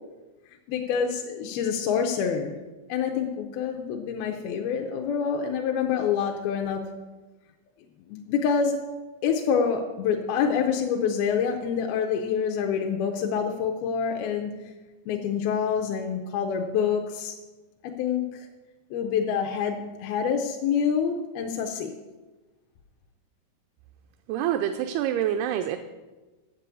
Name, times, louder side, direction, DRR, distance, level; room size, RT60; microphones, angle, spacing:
voice 1, 0.7-2.5 2.9-6.8 8.1-8.8 9.2-14.5 15.1-17.4 17.8-18.5 18.9-21.9, left 7 dB, 80° left, 3 dB, 2.5 m, -26 dB
voice 2, 24.3-25.8, right 10 dB, 85° right, 6 dB, 2.6 m, -26 dB
8.2 x 7.5 x 8.2 m, 1.2 s
omnidirectional pair, 4.4 m